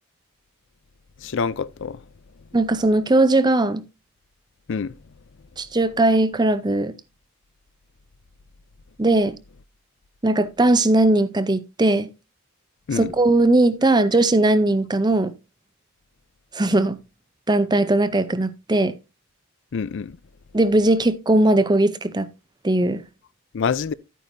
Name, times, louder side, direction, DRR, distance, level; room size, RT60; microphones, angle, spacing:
voice 1, 1.2-2.0 4.7-4.9 12.9-13.1 19.7-20.2 23.5-23.9, left 5 dB, 55° left, 0.4 m, -26 dB
voice 2, 2.5-3.8 5.6-6.9 9.0-9.4 10.2-12.1 12.9-15.3 16.5-17.0 17.5-18.9 20.5-22.3 22.6-23.0, right 2 dB, 20° right, 0.6 m, -19 dB
12.0 x 9.2 x 2.6 m
head